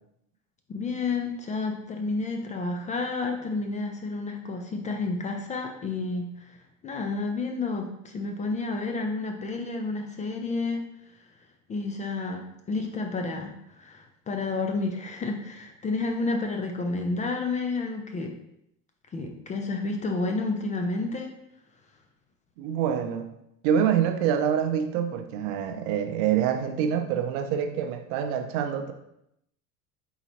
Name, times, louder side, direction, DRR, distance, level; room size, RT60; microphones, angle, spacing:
voice 1, 0.7-6.6 6.8-10.8 11.7-18.3 19.1-21.3, left 3 dB, 20° left, 3 dB, 0.3 m, -30 dB
voice 2, 22.6-23.3 23.6-28.9, right 8 dB, 55° right, 7 dB, 0.7 m, -26 dB
3.9 x 3.9 x 2.9 m, 0.79 s
hypercardioid pair, 75°, 45 cm